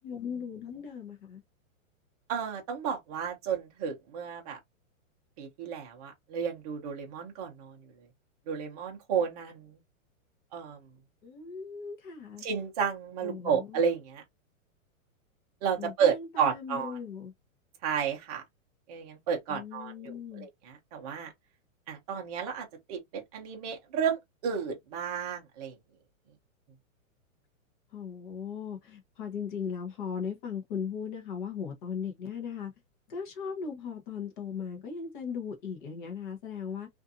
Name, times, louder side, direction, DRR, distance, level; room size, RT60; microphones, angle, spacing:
voice 1, 0.0-1.4 11.2-12.4 13.2-13.8 15.8-17.3 19.5-20.5 27.9-32.7 33.1-36.9, left 6 dB, 35° left, 0.8 m, -38 dB
voice 2, 2.3-4.6 5.4-7.8 8.5-9.7 10.5-10.8 12.4-14.2 15.6-17.0 17.8-18.4 18.9-21.3 21.9-25.8, right 7 dB, 30° right, 0.7 m, -32 dB
2.5 x 2.5 x 2.4 m
hypercardioid pair, 165°, 41 cm